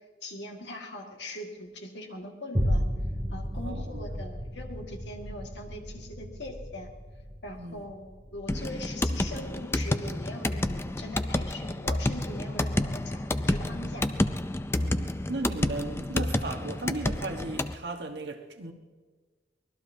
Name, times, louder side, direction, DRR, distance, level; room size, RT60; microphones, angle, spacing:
voice 1, 0.2-2.8 3.3-6.9 7.4-14.1, left 1 dB, 80° left, 1.9 m, -41 dB
sound 1, 2.5-11.1 11.6-11.7, equal, 15° right, 2.7 m, -34 dB
voice 2, 3.6-4.1 7.6-7.8 14.8-18.7, right 2 dB, 75° right, 1.4 m, -36 dB
sound 2, 8.5-17.8, left 1 dB, 15° left, 0.4 m, -29 dB
24.5 x 19.5 x 2.8 m
head